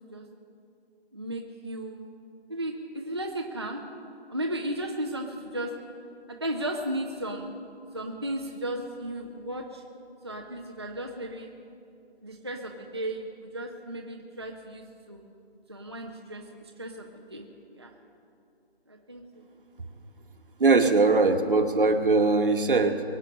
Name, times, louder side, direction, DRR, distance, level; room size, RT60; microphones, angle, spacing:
voice 1, 1.1-2.1 2.5-3.8 4.3-5.7 6.3-7.5 7.9-9.8 10.2-11.5 12.2-15.2 15.7-17.5 17.7-17.9 18.9-19.5, right 1 dB, 25° right, 0 dB, 0.6 m, -35 dB
voice 2, 20.6-23.0, right 3 dB, 55° right, 7 dB, 1.4 m, -21 dB
23.0 x 8.8 x 6.6 m, 2.6 s
hypercardioid pair, 175°, 32 cm